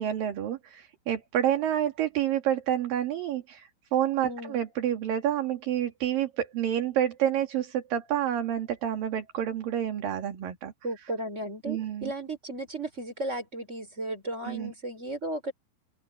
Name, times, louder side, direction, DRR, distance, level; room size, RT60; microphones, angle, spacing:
voice 1, 0.0-10.7 11.7-12.1 14.5-14.7, right 10 dB, 55° right, 3.7 m, -28 dB
voice 2, 4.2-4.5 10.8-15.5, right 1 dB, 15° right, 4.9 m, -35 dB
open air
omnidirectional pair, 5.1 m